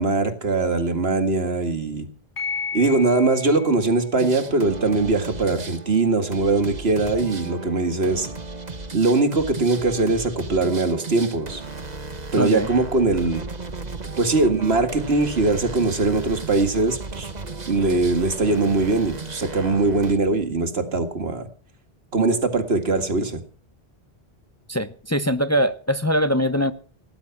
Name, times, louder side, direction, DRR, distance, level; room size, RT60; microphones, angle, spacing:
voice 1, 0.0-2.1 2.7-8.3 8.9-11.6 12.3-13.4 14.2-17.3 17.7-21.5 22.1-23.4, right 3 dB, 75° right, 2.3 m, -21 dB
sound 1, 2.4-11.4, left 5 dB, 50° left, 7.3 m, -39 dB
sound 2, 4.2-20.2, right 3 dB, 40° right, 1.6 m, -35 dB
voice 2, 12.4-12.7 24.7-26.7, equal, 15° left, 0.8 m, -22 dB
18.5 x 11.0 x 5.9 m
omnidirectional pair, 1.1 m